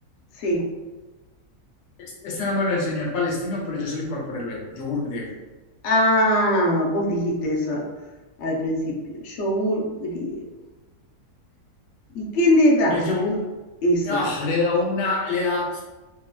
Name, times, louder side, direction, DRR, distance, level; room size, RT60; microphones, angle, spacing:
voice 1, 2.0-5.3 12.9-13.5 14.0-15.8, left 3 dB, 85° left, -3 dB, 1.3 m, -26 dB
voice 2, 5.8-7.8 8.4-10.4 12.1-13.0 13.8-14.2, equal, 65° left, -1 dB, 0.8 m, -21 dB
2.8 x 2.6 x 2.2 m, 1.2 s
omnidirectional pair, 1.6 m